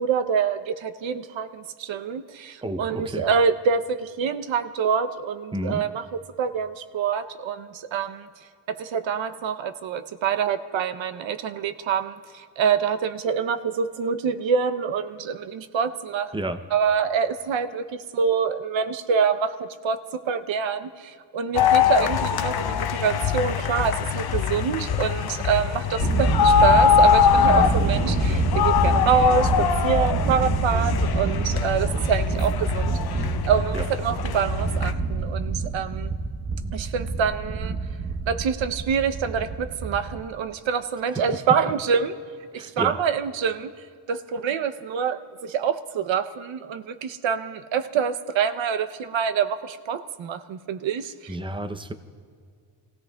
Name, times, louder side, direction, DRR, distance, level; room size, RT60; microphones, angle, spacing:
voice 1, 0.0-6.0 6.4-8.3 8.7-16.3 16.7-20.0 20.3-36.1 36.7-37.8 38.3-42.2 42.5-43.7 44.1-51.4, right 7 dB, 80° right, 10 dB, 0.8 m, -26 dB
voice 2, 2.6-3.3 5.5-5.8 16.3-16.6 27.4-27.8 33.7-33.9 42.5-43.0 51.3-51.9, right 1 dB, 10° right, 8 dB, 0.5 m, -31 dB
sound 1, 21.5-34.9, left 8 dB, 55° left, 0.6 m, -22 dB
Thunder, 26.0-40.2, right 4 dB, 30° right, 0.9 m, -27 dB
29.5 x 16.5 x 2.3 m, 2.1 s
wide cardioid pair, 135°, 45 cm